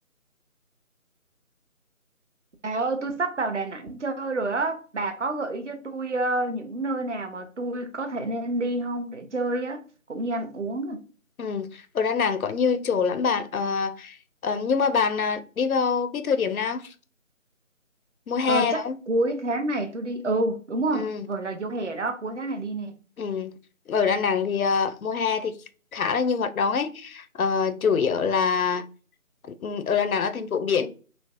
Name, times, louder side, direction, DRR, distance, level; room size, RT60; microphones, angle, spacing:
voice 1, 2.6-9.8 10.1-11.0 18.4-22.9, right 2 dB, 60° right, 0.6 m, -28 dB
voice 2, 11.4-14.2 14.4-16.9 18.3-19.0 20.9-21.3 23.2-23.5 23.9-25.6 25.9-28.8 29.5-30.9, left 5 dB, 90° left, 0.6 m, -25 dB
3.2 x 2.0 x 2.4 m
figure-of-eight pair, 170°, 41 cm